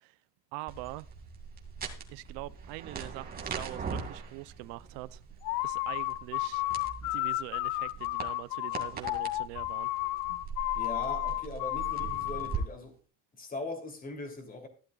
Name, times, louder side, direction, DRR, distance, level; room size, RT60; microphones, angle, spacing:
voice 1, 0.5-1.1 2.1-5.2 5.6-6.6 7.0-9.9, right 20 dB, 65° right, 0.7 m, -43 dB
sound 1, 0.7-12.6, right 6 dB, 20° right, 2.3 m, -42 dB
sound 2, 5.4-12.6, left 18 dB, 85° left, 0.8 m, -32 dB
voice 2, 10.7-13.0 13.4-14.7, left 2 dB, 20° left, 3.1 m, -40 dB
15.0 x 12.0 x 2.4 m
cardioid pair, 160°, 45 cm